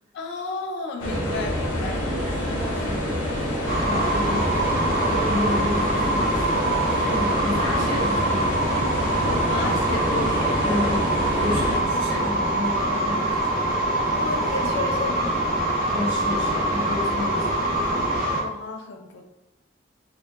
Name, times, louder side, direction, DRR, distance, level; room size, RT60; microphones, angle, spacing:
voice 1, 0.1-2.0 2.5-2.6 9.2-10.9 14.1-15.5 18.3-19.2, left 3 dB, 65° left, 3 dB, 0.3 m, -32 dB
sound 1, 1.0-11.8, equal, 80° left, 0.8 m, -27 dB
voice 2, 2.2-6.5 6.9-8.8 10.6-13.8 15.9-17.6, left 1 dB, 35° right, -9 dB, 1.2 m, -31 dB
sound 2, 3.7-18.4, right 1 dB, 50° right, 0.7 m, -24 dB
2.7 x 2.1 x 2.2 m, 0.95 s
head